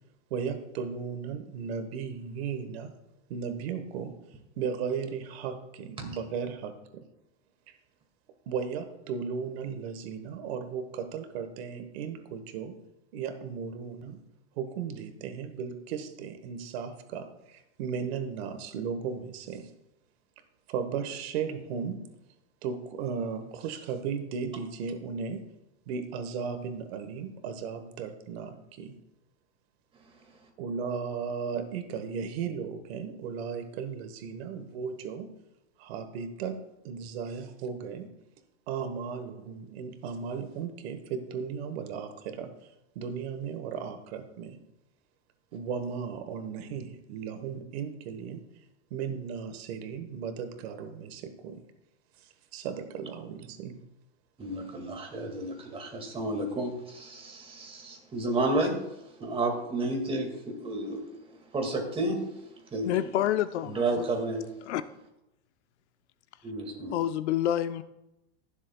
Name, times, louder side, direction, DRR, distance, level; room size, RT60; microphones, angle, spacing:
voice 1, 0.3-2.9 3.3-4.1 4.6-7.0 7.7-7.8 8.5-12.7 13.1-14.2 14.6-19.7 20.7-22.0 22.6-25.4 25.9-29.0 30.6-35.3 35.8-36.6 36.8-38.1 38.7-42.5 42.9-44.6 45.5-48.4 48.9-51.6 52.5-53.7, right 6 dB, 65° right, 8 dB, 1.3 m, -36 dB
voice 2, 54.4-58.7 59.2-61.0 61.5-62.2 62.7-62.9 63.7-64.4 66.4-66.9, right 2 dB, 15° right, 1 dB, 2.0 m, -31 dB
voice 3, 62.8-64.0 64.6-64.8 66.9-67.8, left 12 dB, 75° left, 12 dB, 0.7 m, -28 dB
20.5 x 7.4 x 2.3 m, 0.92 s
supercardioid pair, 145°, 34 cm